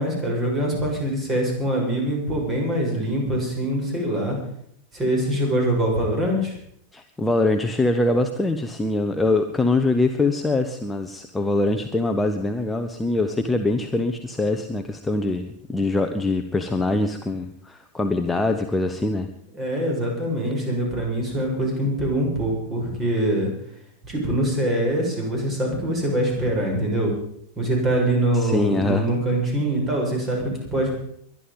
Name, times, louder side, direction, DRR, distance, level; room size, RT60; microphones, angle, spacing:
voice 1, 0.0-4.4 4.9-6.6 19.5-23.5 24.0-27.1 27.6-30.9, right 1 dB, 20° right, 1 dB, 6.8 m, -24 dB
voice 2, 6.9-19.3 28.3-29.1, left 2 dB, 10° left, 5 dB, 1.1 m, -23 dB
22.5 x 11.0 x 5.4 m, 0.69 s
figure-of-eight pair, 90°, 0 cm